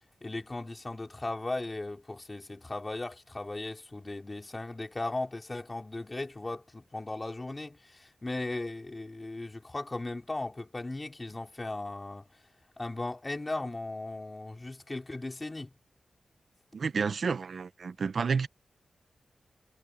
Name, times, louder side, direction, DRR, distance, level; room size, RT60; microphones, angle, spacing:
voice 1, 0.2-12.3 12.8-15.7, left 2 dB, 25° left, 4.5 m, -37 dB
voice 2, 16.7-18.5, right 5 dB, 60° right, 1.2 m, -30 dB
wide cardioid pair, 115°, 0 cm